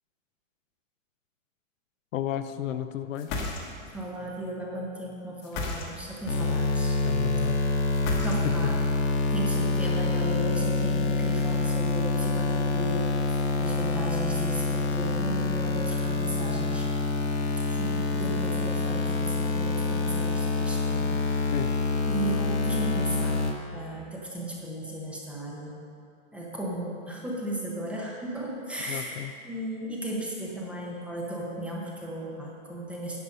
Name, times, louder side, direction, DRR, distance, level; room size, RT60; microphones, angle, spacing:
voice 1, 2.1-3.3 7.0-7.6 8.4-8.5 21.5-21.7 28.9-29.3, left 11 dB, 75° left, 10 dB, 0.6 m, -33 dB
sound 1, 3.1-4.0 5.4-6.3 7.9-8.8, left 3 dB, 30° left, 1.2 m, -34 dB
voice 2, 3.9-7.0 8.2-8.8 9.3-16.9 17.7-21.2 22.1-23.4 23.7-25.8 26.3-29.2 29.4-33.2, right 1 dB, 5° right, -4 dB, 0.8 m, -35 dB
sound 2, 6.3-23.5, left 3 dB, 55° left, 1.4 m, -26 dB
9.7 x 7.9 x 5.3 m, 2.6 s
hypercardioid pair, 160°, 40 cm